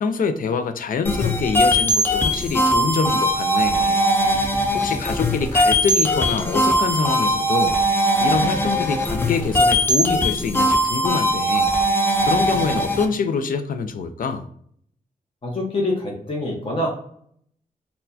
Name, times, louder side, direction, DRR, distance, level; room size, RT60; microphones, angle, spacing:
voice 1, 0.0-4.0 4.7-7.8 8.2-11.7 12.2-14.5, left 5 dB, 75° left, 9 dB, 0.4 m, -25 dB
sound 1, 1.1-13.1, equal, 15° left, 0.4 m, -20 dB
voice 2, 15.4-16.9, left 1 dB, 40° left, -2 dB, 0.9 m, -25 dB
4.2 x 2.2 x 2.6 m, 0.64 s
wide cardioid pair, 160°, 14 cm